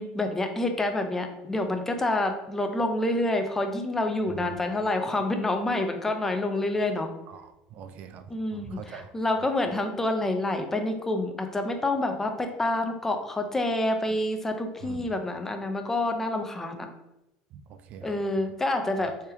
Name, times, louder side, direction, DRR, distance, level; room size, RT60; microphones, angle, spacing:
voice 1, 0.0-7.1 8.3-16.9 18.0-19.1, left 2 dB, 15° left, 5 dB, 0.5 m, -28 dB
voice 2, 7.3-8.2 8.5-9.1 14.8-15.0 17.5-18.2, right 8 dB, 55° right, 9 dB, 0.3 m, -43 dB
3.3 x 3.3 x 3.0 m, 0.89 s
supercardioid pair, 115°, 3 cm